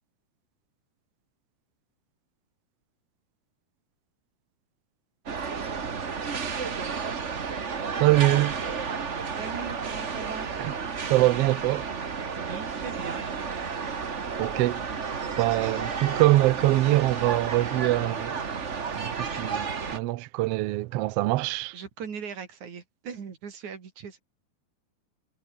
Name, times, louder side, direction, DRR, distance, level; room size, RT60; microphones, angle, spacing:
sound 1, 5.3-20.0, right 5 dB, 35° right, 1.1 m, -32 dB
voice 1, 8.0-8.5 10.6-10.7 11.1-11.9 14.4-14.8 15.3-18.4 19.0-19.7 19.9-21.7, right 17 dB, 90° right, 1.4 m, -23 dB
voice 2, 9.4-10.5 12.3-13.3 19.2-19.7 21.7-24.2, right 6 dB, 70° right, 4.7 m, -39 dB
omnidirectional pair, 3.5 m